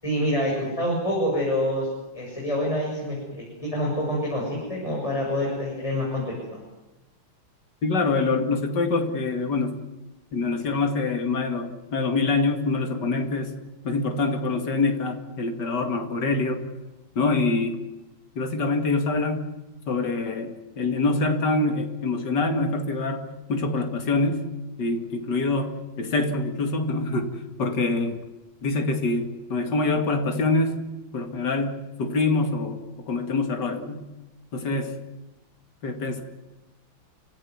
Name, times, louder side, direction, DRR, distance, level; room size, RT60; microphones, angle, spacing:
voice 1, 0.0-1.9 2.1-6.2, equal, 15° left, -3 dB, 7.3 m, -26 dB
voice 2, 7.8-9.8 10.3-13.5 13.8-16.6 17.2-17.8 18.4-19.5 19.9-24.4 24.8-28.2 28.6-30.8 31.1-34.1 34.5-34.9 35.8-36.2, left 3 dB, 50° left, 4 dB, 2.8 m, -25 dB
29.5 x 16.5 x 9.5 m, 1.0 s
omnidirectional pair, 2.4 m